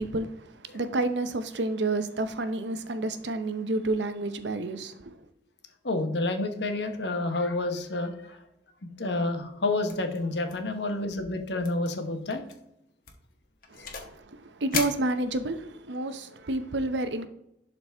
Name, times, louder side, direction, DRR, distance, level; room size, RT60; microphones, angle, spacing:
voice 1, 0.0-5.2 13.7-17.3, right 2 dB, 80° right, 9 dB, 0.8 m, -30 dB
voice 2, 5.8-8.4 9.0-12.4 13.8-13.9, left 2 dB, 70° left, 6 dB, 1.1 m, -29 dB
sound 1, 9.9-10.2 10.5-10.7 11.0-11.1 11.6-11.9 12.3-12.5 13.0-14.2 14.7-15.7, left 6 dB, 50° left, 1.2 m, -36 dB
11.5 x 4.1 x 3.5 m, 0.81 s
head